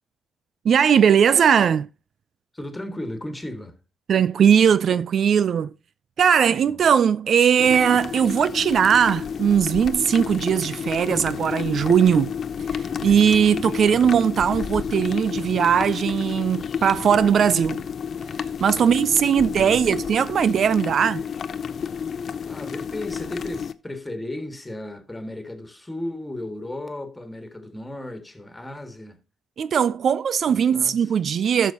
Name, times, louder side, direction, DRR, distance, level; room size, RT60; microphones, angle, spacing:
voice 1, 0.6-1.9 4.1-5.7 6.2-12.3 12.7-17.8 18.6-21.2 29.6-31.7, right 8 dB, 55° right, 0.3 m, -19 dB
voice 2, 2.5-3.8 6.5-6.9 18.8-18.9 19.6-19.8 22.5-29.2 30.5-31.1, left 1 dB, 10° left, 1.8 m, -35 dB
sound 1, 7.6-23.7, left 7 dB, 50° left, 0.6 m, -31 dB
14.0 x 6.4 x 2.9 m
cardioid pair, 90°, 0 cm